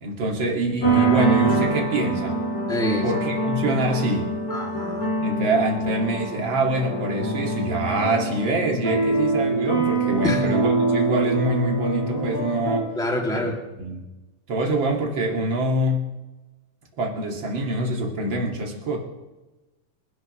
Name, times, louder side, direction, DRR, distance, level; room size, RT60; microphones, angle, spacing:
voice 1, 0.0-2.4 3.0-4.3 5.2-12.9 13.3-13.4 13.8-14.1 14.5-16.0 17.0-19.0, right 2 dB, 35° right, 0 dB, 2.6 m, -25 dB
sound 1, 0.8-12.8, right 2 dB, 40° left, 5.2 m, -24 dB
voice 2, 2.7-3.1 4.5-5.1 10.2-10.4 12.9-13.6, left 1 dB, ahead, -1 dB, 1.5 m, -26 dB
27.5 x 12.0 x 3.2 m, 1.1 s
omnidirectional pair, 4.1 m